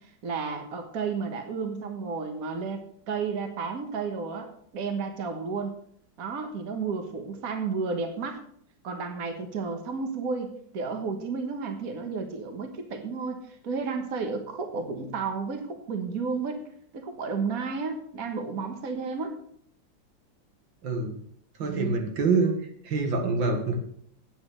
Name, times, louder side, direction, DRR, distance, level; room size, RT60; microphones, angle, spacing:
voice 1, 0.2-2.8 3.1-5.7 6.2-8.4 8.8-16.6 16.9-19.3 21.6-22.0, right 5 dB, 50° right, 6 dB, 1.7 m, -32 dB
voice 2, 20.8-21.1 21.6-22.5 22.8-23.8, right 4 dB, 80° right, 4 dB, 2.4 m, -25 dB
9.0 x 8.6 x 6.4 m, 0.65 s
omnidirectional pair, 2.0 m